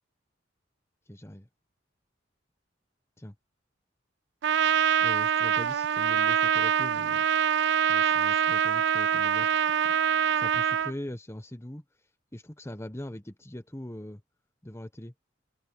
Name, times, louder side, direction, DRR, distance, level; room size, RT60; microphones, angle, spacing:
voice 1, 1.1-1.5 3.2-3.3 5.0-7.2 7.9-9.9 10.3-11.8 12.3-14.2 14.6-15.1, left 1 dB, 15° left, 1.2 m, -41 dB
Trumpet, 4.4-10.9, right 9 dB, 65° right, 0.3 m, -24 dB
sound 1, 6.3-10.8 11.4-11.5, left 6 dB, 75° left, 3.9 m, -55 dB
head